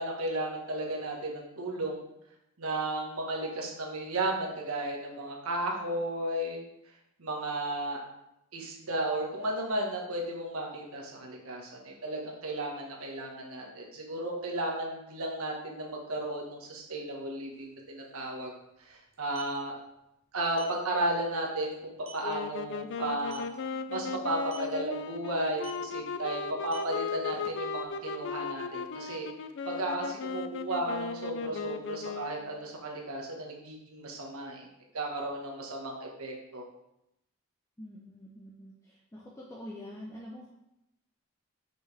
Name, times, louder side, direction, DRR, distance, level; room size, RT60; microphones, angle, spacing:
voice 1, 0.0-2.0 2.6-6.6 7.2-8.0 8.5-18.5 18.8-19.7 20.3-23.4 23.9-29.3 29.6-34.7 34.9-36.6, right 1 dB, 85° right, -1 dB, 1.4 m, -34 dB
sound 1, 17.5-17.6 17.9-18.1 19.1-19.6 20.5-20.8 21.2-21.4 21.7-21.8 22.1-22.3 23.2-23.6 24.4-24.7 25.6-25.9 26.5-27.8, right 6 dB, 60° right, 1.0 m, -47 dB
sound 2, 22.2-32.6, left 5 dB, 55° left, 0.4 m, -37 dB
voice 2, 37.8-40.5, left 1 dB, 15° left, -4 dB, 0.6 m, -45 dB
6.2 x 5.3 x 3.4 m, 0.85 s
head